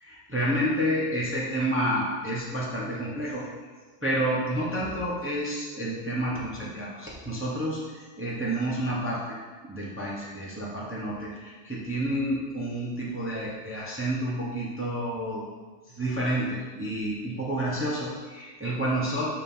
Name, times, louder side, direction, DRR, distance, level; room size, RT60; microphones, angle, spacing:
voice 1, 0.0-3.4 4.0-9.4 9.6-15.4 15.9-19.3, right 1 dB, 10° right, -6 dB, 0.9 m, -29 dB
8.0 x 2.8 x 5.5 m, 1.4 s
omnidirectional pair, 1.2 m